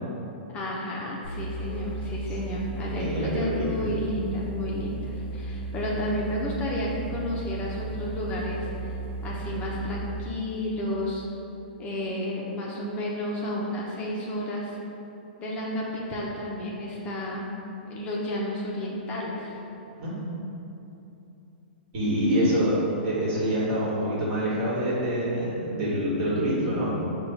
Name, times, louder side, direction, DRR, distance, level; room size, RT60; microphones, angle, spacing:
voice 1, 0.5-9.0 9.2-11.2 11.8-14.8 15.4-17.5 17.9-19.6 22.3-22.6, left 1 dB, 25° left, -4 dB, 0.6 m, -32 dB
sound 1, 1.2-10.4, right 2 dB, 85° right, 0.9 m, -35 dB
voice 2, 2.9-3.7 20.0-20.1 21.9-22.7 23.0-26.9, right 1 dB, 45° right, -6 dB, 1.5 m, -26 dB
4.8 x 2.2 x 4.6 m, 2.9 s
hypercardioid pair, 140°, 5 cm